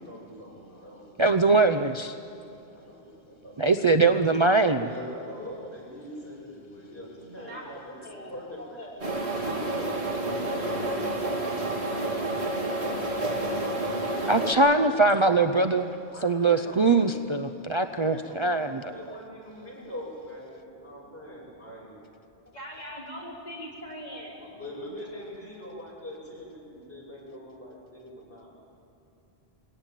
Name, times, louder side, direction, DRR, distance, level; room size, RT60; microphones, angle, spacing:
voice 1, 0.0-1.2 2.2-4.1 4.8-10.0 10.4-11.0 12.7-14.5 14.8-15.8 16.1-17.1 18.1-21.9 24.4-28.5, equal, 65° left, -5 dB, 7.3 m, -43 dB
voice 2, 1.2-2.1 3.6-4.9 14.3-15.9 16.2-18.9, right 3 dB, 35° right, 6 dB, 0.6 m, -22 dB
voice 3, 7.4-8.3 8.8-9.2 17.2-17.3 20.9-21.0 21.4-21.6 21.8-22.0 22.3-24.4 26.2-26.3 27.2-28.1, equal, 40° left, -5 dB, 5.7 m, -44 dB
sound 1, 9.0-14.5, right 2 dB, 80° right, 3.0 m, -29 dB
21.5 x 17.5 x 9.2 m, 2.8 s
omnidirectional pair, 1.1 m